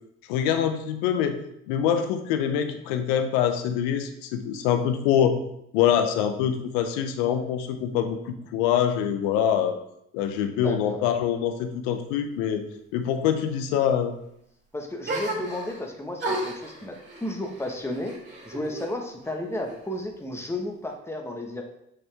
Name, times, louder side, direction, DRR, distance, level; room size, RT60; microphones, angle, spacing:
voice 1, 0.3-1.4 1.7-5.4 5.7-9.8 10.1-12.6 12.9-14.1, left 9 dB, 90° left, 8 dB, 0.7 m, -24 dB
voice 2, 10.5-11.0 14.7-18.1 18.4-21.6, left 1 dB, 10° left, 2 dB, 1.3 m, -33 dB
sound 1, 15.0-15.9 16.2-18.9 19.2-20.1, right 1 dB, 35° right, 2.6 m, -34 dB
6.3 x 5.9 x 3.5 m, 0.76 s
supercardioid pair, 60°, 29 cm